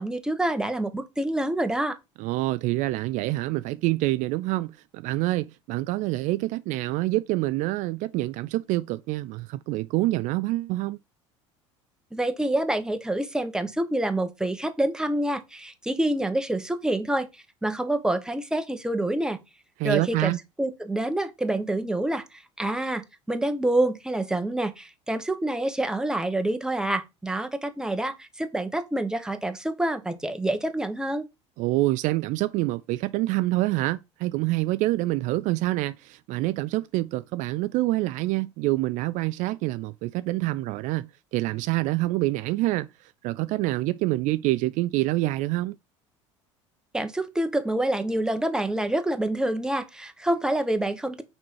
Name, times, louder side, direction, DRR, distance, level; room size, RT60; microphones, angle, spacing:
voice 1, 0.0-2.0 12.1-19.4 19.8-31.3 46.9-51.2, right 1 dB, 5° right, 1.1 m, -27 dB
voice 2, 2.2-11.0 19.8-20.4 31.6-45.8, right 18 dB, 55° right, 0.4 m, -26 dB
6.0 x 4.4 x 4.6 m
hypercardioid pair, 70°, 16 cm